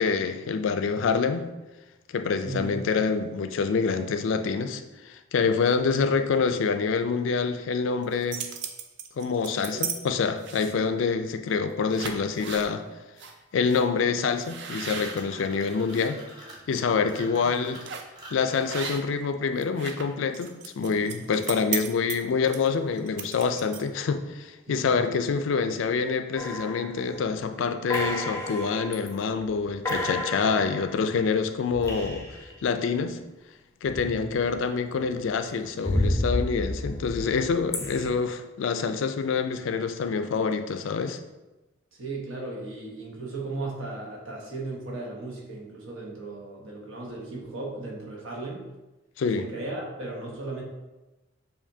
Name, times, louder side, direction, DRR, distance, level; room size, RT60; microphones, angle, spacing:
voice 1, 0.0-1.5 2.1-8.5 9.2-12.8 13.5-16.2 16.7-17.9 18.3-32.3 32.6-33.2 33.8-41.2 49.2-49.5, left 5 dB, 70° left, 9 dB, 0.3 m, -26 dB
voice 2, 2.4-2.8 9.7-9.8 16.9-17.6 24.7-24.9 34.0-34.3 42.0-48.6 49.3-50.6, right 2 dB, 80° right, -2 dB, 1.2 m, -36 dB
sound 1, 8.0-10.0 10.4-10.9 11.5-11.6 11.9-12.7 13.2-13.3 13.7-13.8 14.4-16.1 16.5-16.8 17.8-18.2 18.7-19.3 19.5-24.0, right 7 dB, 60° right, 0.4 m, -36 dB
sound 2, 14.6-19.2, right 1 dB, 20° right, 0.8 m, -45 dB
sound 3, 26.4-27.3 27.9-29.1 29.5-29.6 29.8-32.5 33.8-34.6 35.0-38.1, left 1 dB, 15° left, 0.5 m, -31 dB
7.1 x 2.6 x 2.7 m, 1.1 s
head